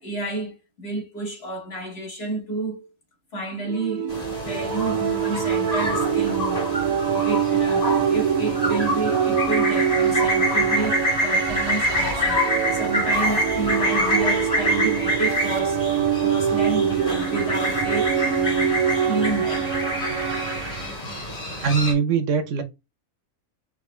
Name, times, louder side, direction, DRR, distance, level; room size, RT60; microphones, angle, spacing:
voice 1, 0.0-2.9 3.3-6.7 7.1-18.7 19.1-19.7, right 2 dB, 50° left, 1.7 m, -31 dB
sound 1, 3.7-20.9, right 8 dB, 90° right, 1.1 m, -24 dB
Warbling Magpie Suburban Sounds, 4.1-21.9, left 1 dB, 30° left, 1.8 m, -26 dB
voice 2, 21.5-22.6, right 6 dB, 65° right, 1.0 m, -22 dB
4.8 x 2.9 x 3.0 m
omnidirectional pair, 1.4 m